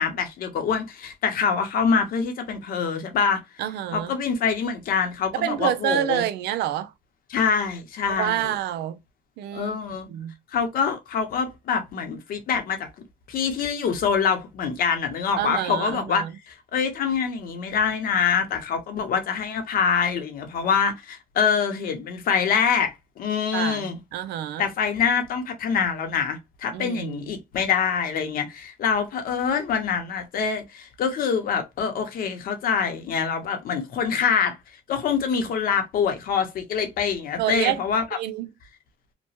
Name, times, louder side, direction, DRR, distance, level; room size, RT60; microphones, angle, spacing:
voice 1, 0.0-3.4 3.9-6.2 7.3-8.4 9.5-10.1 10.5-12.9 13.3-24.0 24.6-34.6 34.9-38.0, left 6 dB, 60° left, 0.8 m, -25 dB
voice 2, 3.6-4.2 5.3-6.9 8.1-9.0 9.4-10.3 15.4-16.3 23.5-24.7 26.7-27.3 37.4-37.8 38.1-38.5, right 11 dB, 80° right, 0.4 m, -28 dB
3.0 x 2.1 x 2.7 m
cardioid pair, 110°, 17 cm